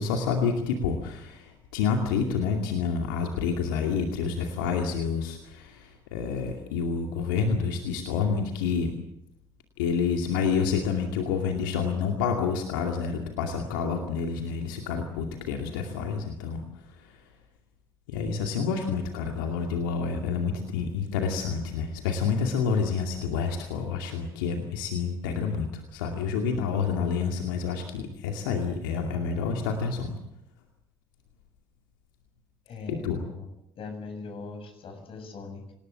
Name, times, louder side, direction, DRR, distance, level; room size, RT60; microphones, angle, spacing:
voice 1, 0.0-8.9 9.8-16.6 17.0-17.2 18.1-30.2 32.9-33.2, left 5 dB, 80° left, 3 dB, 2.4 m, -28 dB
voice 2, 18.6-18.9 32.7-33.5 33.8-35.7, left 4 dB, 55° left, 6 dB, 7.2 m, -41 dB
26.5 x 19.0 x 7.6 m, 0.78 s
hypercardioid pair, 55°, 11 cm